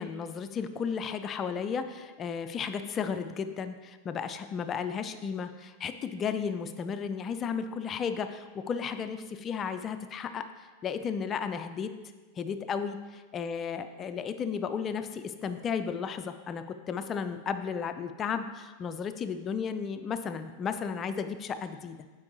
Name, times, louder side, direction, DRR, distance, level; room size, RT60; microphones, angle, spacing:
voice 1, 0.0-11.9 12.4-13.0 13.3-22.0, left 6 dB, 25° left, 10 dB, 0.4 m, -34 dB
8.4 x 4.5 x 3.1 m, 1.3 s
figure-of-eight pair, 90°, 0 cm